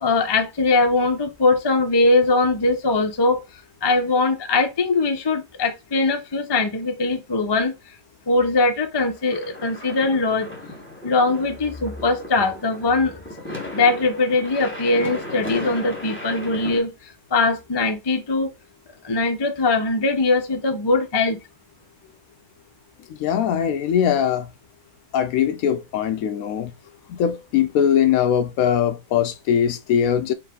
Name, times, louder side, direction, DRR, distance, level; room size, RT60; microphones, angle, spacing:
voice 1, 0.0-3.4 3.8-7.7 8.3-10.5 11.0-13.2 13.7-18.5 19.0-21.4, left 3 dB, 30° left, 0.4 m, -21 dB
sound 1, 9.1-16.8, left 1 dB, 10° left, 1.4 m, -36 dB
voice 2, 23.2-24.5 25.1-26.7 27.1-30.3, left 9 dB, 70° left, 0.9 m, -21 dB
4.7 x 2.6 x 3.7 m
omnidirectional pair, 1.6 m